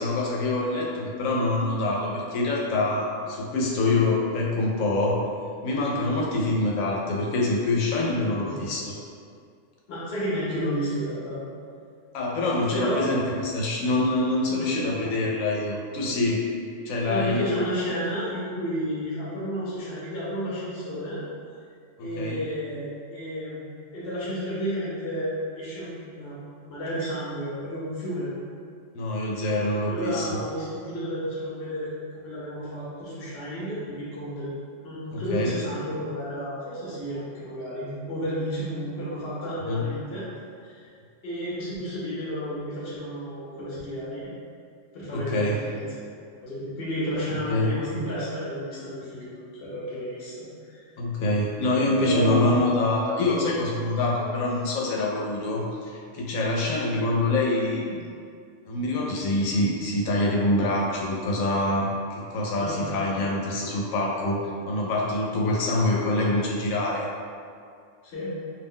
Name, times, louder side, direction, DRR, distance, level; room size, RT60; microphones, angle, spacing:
voice 1, 0.0-5.2 5.6-9.0 12.1-16.4 16.9-17.4 22.0-22.4 28.9-30.3 35.1-35.5 39.6-39.8 45.1-45.6 47.5-47.7 51.0-58.0 58.7-64.4 64.7-67.1, left 2 dB, 85° left, -2 dB, 1.0 m, -25 dB
voice 2, 9.9-11.4 12.7-13.0 14.5-14.9 17.1-21.2 22.0-26.4 26.6-28.3 29.9-34.5 34.8-40.3 40.6-40.9 41.2-44.3 44.9-46.0 46.4-50.8 52.0-52.4 62.5-62.8 68.0-68.3, equal, 55° left, -7 dB, 0.9 m, -32 dB
2.6 x 2.1 x 3.5 m, 2.3 s
omnidirectional pair, 1.4 m